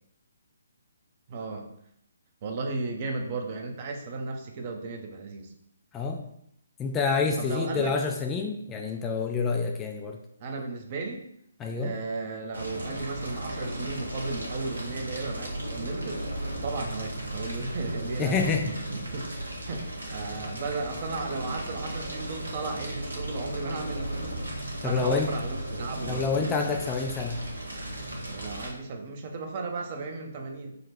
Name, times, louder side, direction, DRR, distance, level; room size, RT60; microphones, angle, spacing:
voice 1, 1.3-1.7 2.4-5.5 7.4-7.9 10.4-11.3 11.7-16.3 16.6-24.5 24.8-26.5 28.3-30.8, right 3 dB, 35° right, 4 dB, 0.6 m, -35 dB
voice 2, 5.9-6.3 6.8-10.2 11.6-12.0 18.2-18.7 24.8-25.4 26.1-27.4, left 4 dB, 15° left, 2 dB, 0.3 m, -28 dB
Fire, 12.5-28.7, right 1 dB, 80° right, 1.2 m, -35 dB
3.9 x 2.2 x 4.3 m, 0.73 s
figure-of-eight pair, 140°, 0 cm